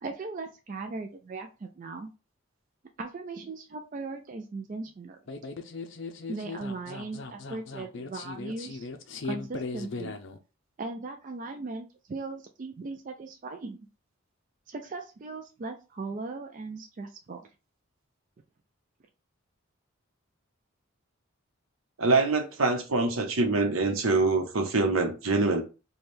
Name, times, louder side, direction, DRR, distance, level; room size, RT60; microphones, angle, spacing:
voice 1, 0.0-2.1 3.0-5.2 6.3-8.9 9.2-10.2 10.8-13.8 14.7-17.5, right 3 dB, 40° right, 0.3 m, -38 dB
sound 1, 5.3-10.4, left 4 dB, 60° left, 0.5 m, -38 dB
voice 2, 22.0-25.6, right 3 dB, 80° right, 0.8 m, -24 dB
3.3 x 2.3 x 4.3 m
head